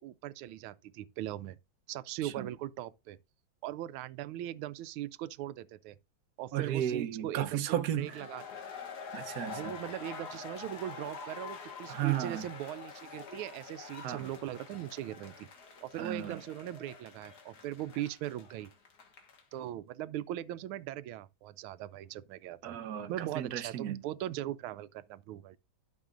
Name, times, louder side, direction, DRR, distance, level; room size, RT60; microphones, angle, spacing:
voice 1, 0.0-1.6 1.9-3.2 3.6-6.0 6.4-8.4 9.5-15.5 15.8-18.7 19.5-22.8 23.1-25.6, right 13 dB, 90° right, 1.4 m, -40 dB
voice 2, 6.5-8.2 9.1-9.7 11.9-12.4 14.0-14.3 16.0-16.4 22.6-24.0, right 11 dB, 60° right, 1.2 m, -34 dB
sound 1, 7.9-19.5, left 5 dB, 55° left, 1.9 m, -46 dB
12.0 x 6.2 x 2.5 m
omnidirectional pair, 2.2 m